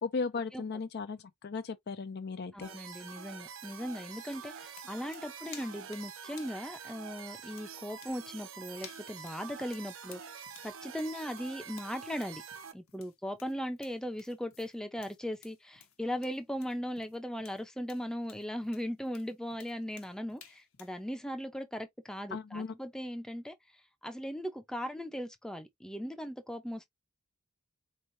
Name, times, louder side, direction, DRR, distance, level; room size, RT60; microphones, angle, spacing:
voice 1, 0.0-2.7 22.3-22.7, left 4 dB, 50° left, 0.4 m, -36 dB
voice 2, 2.5-12.4 12.7-23.5 24.0-26.9, equal, 5° left, 0.6 m, -38 dB
sound 1, 2.6-12.7, right 7 dB, 60° right, 0.7 m, -46 dB
sound 2, 3.9-21.0, left 8 dB, 70° left, 1.0 m, -56 dB
4.4 x 3.1 x 2.6 m
head